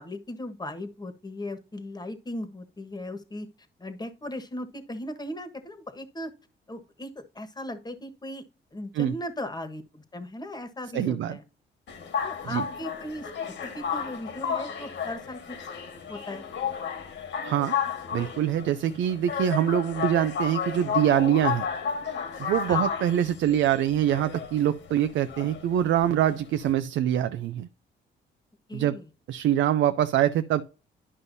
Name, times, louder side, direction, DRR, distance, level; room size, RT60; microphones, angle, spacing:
voice 1, 0.0-3.5 3.8-6.3 6.7-8.4 8.7-11.4 12.2-13.3 13.6-15.6 16.1-16.4 18.8-19.0 22.7-22.8 28.7-29.1, left 1 dB, 20° left, 1.4 m, -37 dB
voice 2, 10.9-11.4 12.5-12.6 17.4-17.7 18.1-21.7 22.4-27.7 28.7-29.0 29.3-30.6, right 11 dB, 75° right, 0.5 m, -24 dB
sound 1, 11.9-26.7, left 7 dB, 65° left, 1.7 m, -32 dB
11.0 x 5.4 x 2.7 m
cardioid pair, 90°, 20 cm